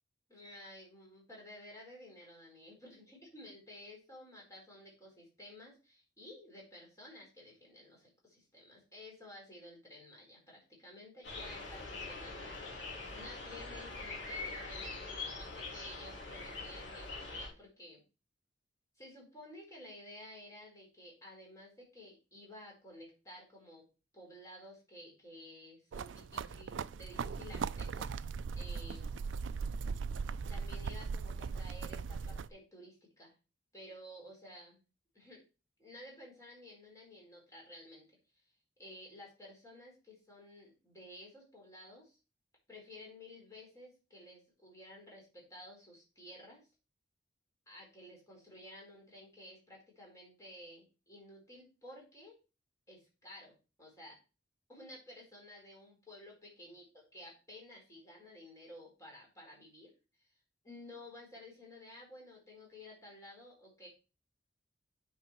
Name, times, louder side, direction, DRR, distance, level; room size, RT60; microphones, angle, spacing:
voice 1, 0.3-18.0 19.0-23.9 24.1-28.1 28.5-29.2 30.1-30.2 30.5-33.3 33.7-34.8 35.1-35.4 35.8-38.1 38.8-42.2 42.7-46.6 47.7-52.4 52.9-54.2 54.7-59.9 60.2-60.3 60.6-63.9, left 1 dB, 15° left, -2 dB, 4.7 m, -53 dB
sound 1, 11.2-17.5, left 3 dB, 75° left, 3.1 m, -43 dB
sound 2, 25.9-32.5, right 5 dB, 80° right, 0.4 m, -39 dB
9.0 x 5.3 x 4.4 m, 0.32 s
head